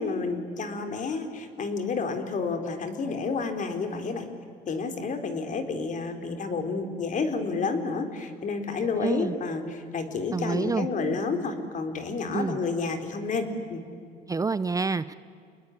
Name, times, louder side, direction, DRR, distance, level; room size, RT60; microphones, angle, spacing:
voice 1, 0.0-4.3 4.7-13.8, left 4 dB, 50° left, 7 dB, 3.7 m, -30 dB
voice 2, 9.0-9.3 10.3-10.9 12.3-12.6 14.3-15.1, right 4 dB, 20° right, 15 dB, 0.6 m, -27 dB
28.5 x 20.5 x 9.9 m, 2.4 s
cardioid pair, 110°, 17 cm